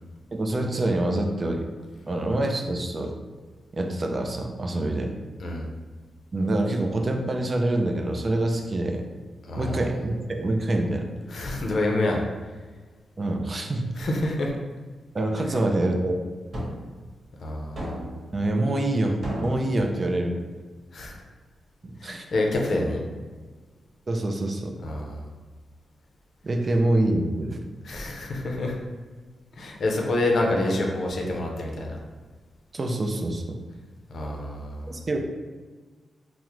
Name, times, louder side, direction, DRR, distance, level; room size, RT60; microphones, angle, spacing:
voice 1, 0.3-1.7 2.1-3.1 3.7-5.1 6.3-9.0 9.6-11.1 13.2-13.9 15.1-16.2 18.3-20.4 21.8-22.2 24.1-24.7 26.4-27.6 32.7-33.6 34.9-35.2, right 1 dB, 40° right, 3 dB, 0.4 m, -26 dB
voice 2, 9.4-10.0 11.3-12.2 14.0-14.5 15.4-15.6 17.4-18.0 20.9-21.2 22.0-23.0 24.8-25.2 27.8-28.8 29.6-32.0 34.1-35.0, left 2 dB, 65° left, 0 dB, 0.5 m, -27 dB
sound 1, 16.5-16.8 17.8-18.3 19.2-19.7, equal, 55° right, 1.0 m, -32 dB
3.5 x 2.0 x 2.9 m, 1.4 s
cardioid pair, 85°, 0 cm